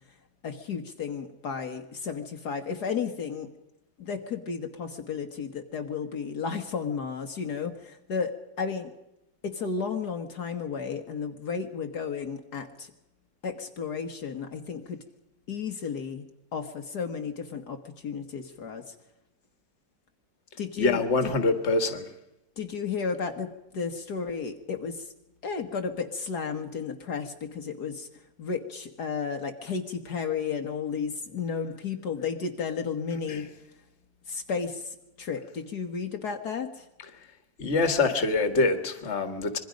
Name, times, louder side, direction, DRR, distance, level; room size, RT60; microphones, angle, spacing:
voice 1, 0.4-3.5 4.0-8.9 9.4-12.9 13.4-15.0 15.5-16.2 16.5-19.0 20.6-21.3 22.6-25.1 25.4-28.1 28.4-33.5 34.3-36.9, left 5 dB, 65° left, 5 dB, 1.9 m, -33 dB
voice 2, 20.8-22.1 33.3-33.5 37.6-39.6, left 3 dB, 40° left, 8 dB, 2.0 m, -25 dB
26.0 x 22.0 x 5.2 m, 0.92 s
omnidirectional pair, 1.9 m